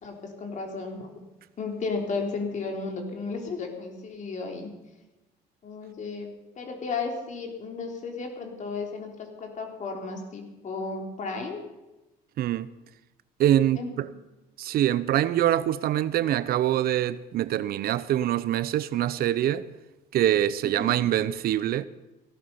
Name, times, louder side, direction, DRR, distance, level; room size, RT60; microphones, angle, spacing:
voice 1, 0.0-1.2 1.6-4.7 5.6-6.3 6.6-11.6 13.8-13.9 20.6-21.0, left 4 dB, 45° left, 3.5 m, -34 dB
voice 2, 12.4-12.7 13.4-14.1 14.6-19.7 20.1-21.8, right 12 dB, 65° right, 0.6 m, -24 dB
16.0 x 13.0 x 5.7 m
cardioid pair, 110°, 17 cm